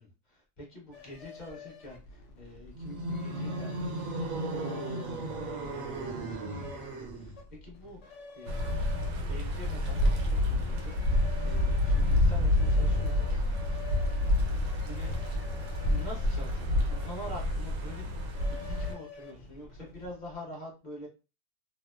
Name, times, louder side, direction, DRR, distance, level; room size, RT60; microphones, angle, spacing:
voice 1, 0.0-8.9 9.3-13.8 14.8-15.1 15.9-18.2 18.5-21.1, left 1 dB, 35° left, -3 dB, 0.9 m, -47 dB
sound 1, 0.9-20.3, left 4 dB, 80° left, 0.6 m, -49 dB
sound 2, 2.7-7.4, right 1 dB, 65° right, 0.9 m, -36 dB
sound 3, 8.5-18.9, left 1 dB, 80° right, 1.2 m, -28 dB
2.9 x 2.0 x 2.2 m, 0.30 s
omnidirectional pair, 1.8 m